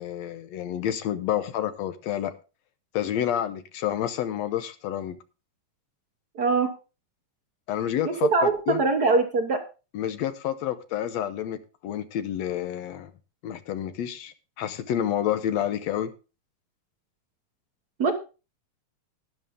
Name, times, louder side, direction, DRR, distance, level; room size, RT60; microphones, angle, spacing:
voice 1, 0.0-2.3 2.9-5.2 7.7-8.8 9.9-13.1 13.4-16.1, left 10 dB, 70° left, 1.8 m, -29 dB
voice 2, 6.3-6.7 8.0-9.6 18.0-18.1, right 3 dB, 60° right, 1.0 m, -22 dB
12.5 x 10.5 x 3.6 m
omnidirectional pair, 3.6 m